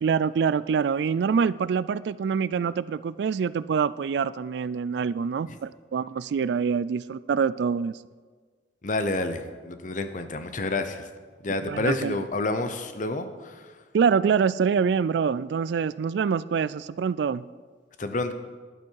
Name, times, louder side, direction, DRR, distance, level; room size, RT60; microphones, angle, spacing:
voice 1, 0.0-8.0 11.7-12.2 13.9-17.4, right 6 dB, 65° right, 18 dB, 0.3 m, -25 dB
voice 2, 8.8-11.1 11.4-13.7 18.0-18.3, left 2 dB, 45° left, 9 dB, 0.8 m, -29 dB
12.0 x 11.0 x 4.7 m, 1.5 s
head